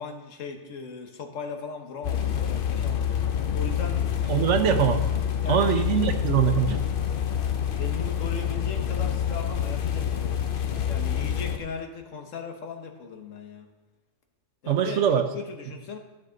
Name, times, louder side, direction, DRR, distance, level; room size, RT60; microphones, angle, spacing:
voice 1, 0.0-3.3 3.5-4.1 5.4-6.2 6.7-6.8 7.8-13.7 14.6-15.0 15.3-16.0, left 5 dB, 85° left, 4 dB, 1.4 m, -38 dB
sound 1, 2.0-11.6, left 9 dB, 55° left, 0.7 m, -27 dB
voice 2, 4.3-5.0 5.5-6.8 14.7-15.2, right 8 dB, 75° right, 8 dB, 1.0 m, -22 dB
13.0 x 6.2 x 3.8 m, 1.2 s
omnidirectional pair, 1.3 m